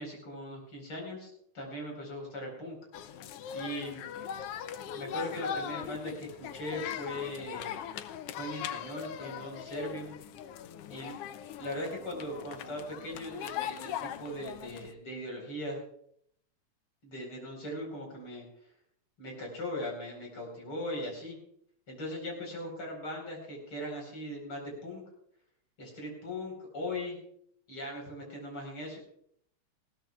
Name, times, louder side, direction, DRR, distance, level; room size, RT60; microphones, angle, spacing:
voice 1, 0.0-2.8 3.5-4.0 4.9-7.7 8.4-10.2 10.9-11.1 11.6-15.8 17.0-18.4 19.2-21.4 21.9-25.0 25.8-27.2 27.7-29.0, left 1 dB, 45° left, 0 dB, 5.3 m, -39 dB
sound 1, 2.9-14.9, left 9 dB, 85° left, 1.3 m, -40 dB
19.5 x 16.5 x 2.4 m, 0.66 s
omnidirectional pair, 3.4 m